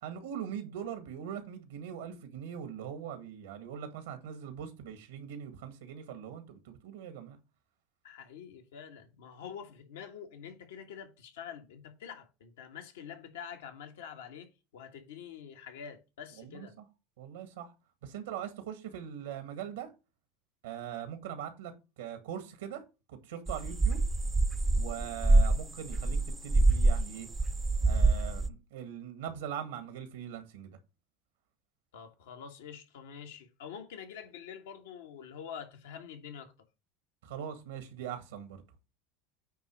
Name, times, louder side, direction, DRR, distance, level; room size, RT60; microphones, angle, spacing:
voice 1, 0.0-7.4 16.4-16.8 17.2-17.7 18.0-19.9 20.6-22.8 23.1-24.0 24.7-27.3 27.8-30.8 37.2-38.6, right 9 dB, 85° right, 1.7 m, -41 dB
voice 2, 8.0-16.7 31.9-36.5, left 7 dB, 85° left, 1.5 m, -46 dB
sound 1, 23.5-27.1 27.3-28.5, right 2 dB, 15° right, 0.5 m, -25 dB
9.1 x 3.0 x 6.3 m
supercardioid pair, 100°, 0 cm